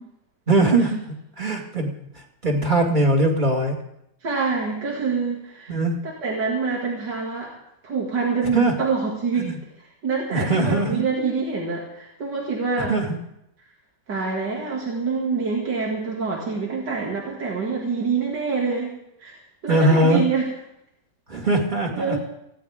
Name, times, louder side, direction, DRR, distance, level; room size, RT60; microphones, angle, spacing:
voice 1, 0.5-1.9 2.4-3.8 5.7-6.0 8.5-8.7 9.4-9.6 10.3-11.0 12.8-13.2 19.7-20.2 21.3-22.2, right 2 dB, 25° right, 1 dB, 2.4 m, -21 dB
voice 2, 4.2-5.8 6.2-7.6 7.8-12.9 14.1-19.3 19.6-20.4 21.9-22.2, right 4 dB, 75° right, -3 dB, 3.1 m, -26 dB
19.5 x 16.0 x 3.7 m, 0.82 s
omnidirectional pair, 1.9 m